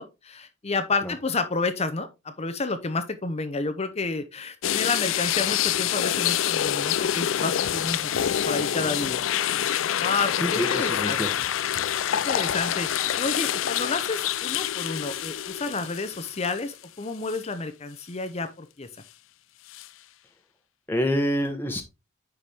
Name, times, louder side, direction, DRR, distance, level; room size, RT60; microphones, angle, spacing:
voice 1, 0.0-9.2 10.0-11.3 12.1-18.9, left 3 dB, 35° left, 0.8 m, -30 dB
sound 1, 4.6-16.8 17.3-17.4 19.7-19.9, left 10 dB, 90° left, 0.4 m, -26 dB
voice 2, 10.4-11.3 20.9-21.8, equal, 10° left, 1.2 m, -27 dB
9.9 x 4.6 x 3.4 m
head